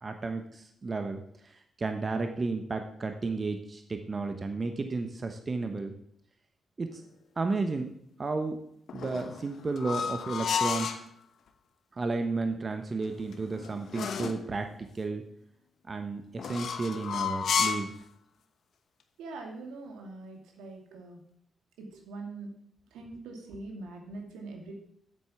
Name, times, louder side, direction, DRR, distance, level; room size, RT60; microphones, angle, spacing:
voice 1, 0.0-5.9 6.8-7.0 7.4-7.9 8.2-8.6 8.9-11.0 11.9-15.2 15.9-18.0, right 3 dB, 40° right, 6 dB, 1.2 m, -33 dB
sound 1, 8.9-11.1 13.0-14.5 16.4-18.0, left 7 dB, 70° left, 0.9 m, -32 dB
voice 2, 19.2-21.2 21.9-22.5 22.9-24.7, right 3 dB, 85° right, 2 dB, 2.3 m, -43 dB
8.3 x 8.0 x 7.2 m, 0.70 s
supercardioid pair, 50°, 0 cm